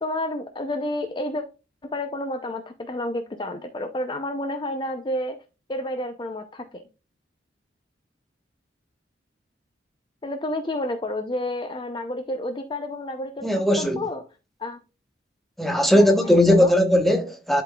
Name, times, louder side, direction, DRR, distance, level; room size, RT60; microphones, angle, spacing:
voice 1, 0.0-1.4 1.8-5.4 5.7-6.8 10.2-14.3 14.6-14.8 15.9-16.7, left 1 dB, 25° left, 0.5 m, -30 dB
voice 2, 13.4-14.0 15.6-17.6, left 1 dB, ahead, 0.9 m, -18 dB
11.0 x 3.9 x 2.3 m
head